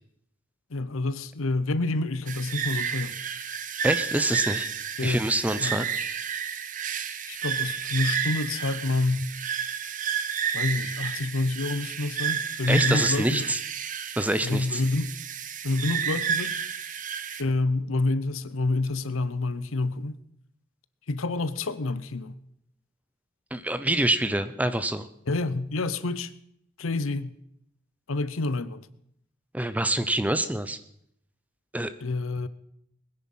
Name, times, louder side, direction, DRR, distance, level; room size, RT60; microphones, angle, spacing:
voice 1, 0.7-3.2 5.0-5.3 5.6-5.9 7.3-9.3 10.5-13.5 14.4-15.2 15.6-16.6 17.4-20.2 21.1-22.4 25.3-26.3 26.8-27.4 28.1-28.9 32.0-32.5, left 2 dB, 75° left, 0.8 m, -28 dB
sound 1, 2.3-17.4, right 8 dB, 40° right, 0.9 m, -31 dB
voice 2, 3.8-4.7 5.0-5.9 12.7-13.6 14.2-14.8 23.5-25.1 29.5-30.8 31.7-31.9, right 1 dB, 5° right, 0.6 m, -26 dB
21.0 x 10.0 x 5.5 m
head